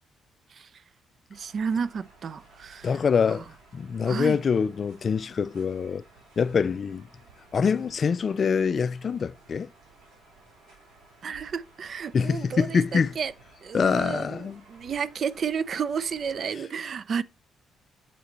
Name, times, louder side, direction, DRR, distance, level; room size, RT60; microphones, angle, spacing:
voice 1, 1.3-2.9 4.1-4.4 11.2-13.3 13.6-17.2, right 6 dB, 50° right, 0.3 m, -31 dB
sound 1, 1.3-16.4, right 3 dB, 80° right, 3.3 m, -55 dB
voice 2, 2.8-3.4 3.7-6.0 6.4-7.1 7.5-9.7 12.1-13.2 13.7-14.6, left 6 dB, 45° left, 0.3 m, -25 dB
7.4 x 4.2 x 3.8 m
cardioid pair, 90°, 0 cm